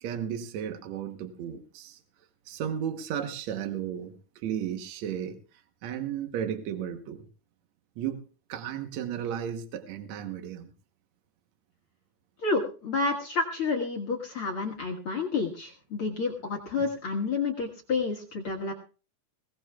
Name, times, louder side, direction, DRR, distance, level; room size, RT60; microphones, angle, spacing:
voice 1, 0.0-2.0 2.5-4.2 4.4-5.4 5.8-7.2 8.0-8.2 8.5-10.7 16.8-16.9, right 9 dB, 70° right, 6 dB, 1.7 m, -34 dB
voice 2, 12.4-18.7, left 4 dB, 55° left, 5 dB, 1.5 m, -30 dB
22.0 x 17.5 x 2.4 m, 0.36 s
omnidirectional pair, 4.7 m